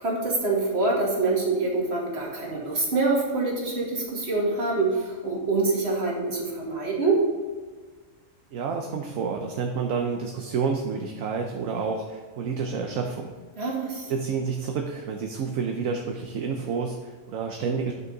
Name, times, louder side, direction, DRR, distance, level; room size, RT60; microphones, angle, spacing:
voice 1, 0.0-7.2 13.6-14.1, right 3 dB, 45° right, -3 dB, 2.3 m, -25 dB
voice 2, 8.5-13.4 14.1-17.9, right 5 dB, 70° right, 3 dB, 1.1 m, -29 dB
11.0 x 6.1 x 4.0 m, 1.4 s
omnidirectional pair, 1.5 m